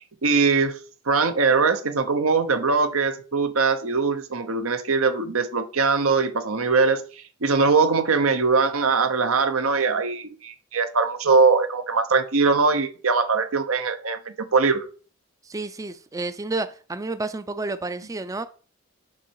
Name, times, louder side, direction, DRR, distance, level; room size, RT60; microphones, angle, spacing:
voice 1, 0.2-0.8 1.1-14.8, right 4 dB, 90° right, 1.0 m, -21 dB
voice 2, 15.4-18.5, right 3 dB, 15° right, 0.3 m, -30 dB
7.3 x 5.5 x 4.7 m
head